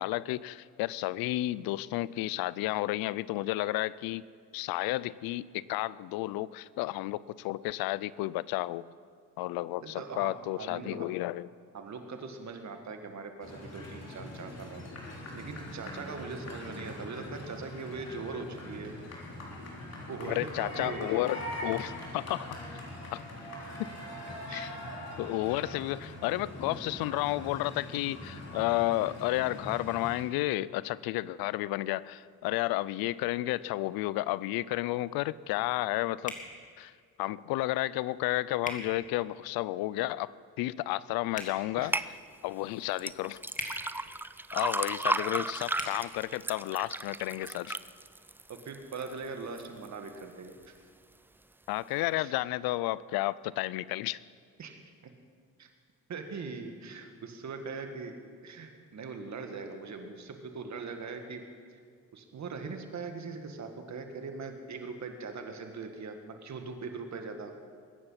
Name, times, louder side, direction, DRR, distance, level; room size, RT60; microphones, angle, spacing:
voice 1, 0.0-4.2 4.5-8.9 9.4-11.5 20.3-22.6 23.1-23.2 23.8-23.9 24.5-24.8 25.2-36.4 36.8-36.9 37.2-40.3 40.6-42.0 42.4-43.4 44.5-47.8 51.7-54.2, left 17 dB, 90° left, 20 dB, 0.5 m, -32 dB
voice 2, 9.8-11.1 11.7-14.8 15.4-19.0 20.1-21.3 24.5-24.7 41.8-41.9 48.5-50.6 52.1-52.3 54.6-55.1 55.6-55.7 56.1-58.2 58.4-61.4 61.7-61.8 62.1-67.5, right 4 dB, 50° right, 5 dB, 1.9 m, -41 dB
sound 1, 13.4-30.2, left 1 dB, 45° left, 3.7 m, -42 dB
sound 2, 36.2-36.5 38.6-38.8 41.3-41.5 43.5-43.7 45.7-45.9, left 2 dB, 20° left, 2.2 m, -38 dB
sound 3, 41.9-42.1 43.0-49.1 49.6-50.1 50.6-50.7, right 2 dB, 5° right, 0.3 m, -34 dB
21.5 x 9.8 x 5.8 m, 2.1 s
cardioid pair, 85°, 35 cm